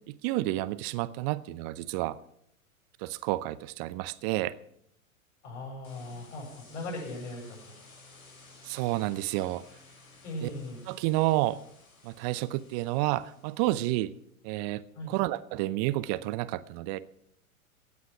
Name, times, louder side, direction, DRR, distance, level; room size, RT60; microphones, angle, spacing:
voice 1, 0.1-2.2 3.0-4.5 8.6-9.6 10.4-10.5 10.9-11.6 12.0-14.1 14.4-17.0, right 17 dB, 30° right, 0.6 m, -30 dB
voice 2, 5.4-7.7 10.2-10.8 14.9-15.1, left 1 dB, 55° left, 7.7 m, -39 dB
sound 1, 5.8-14.1, left 3 dB, 75° left, 5.7 m, -55 dB
16.5 x 9.4 x 5.9 m
figure-of-eight pair, 105°, 42 cm